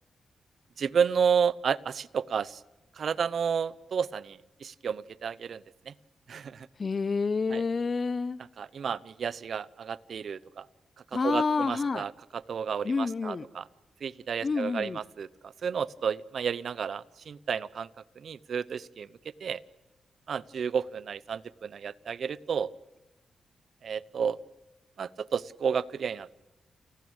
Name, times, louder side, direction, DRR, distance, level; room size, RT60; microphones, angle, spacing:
voice 1, 0.8-2.6 3.0-5.9 6.3-6.7 7.5-7.6 8.6-10.7 11.2-13.7 14.0-17.9 18.2-19.1 19.4-19.6 20.3-22.7 23.8-24.4 25.0-26.4, right 7 dB, 60° right, 20 dB, 0.6 m, -31 dB
voice 2, 6.8-8.4 11.1-12.0 12.8-13.5 14.4-15.0, left 4 dB, 35° left, 20 dB, 0.7 m, -28 dB
30.0 x 12.5 x 8.8 m, 1.1 s
wide cardioid pair, 125°, 0 cm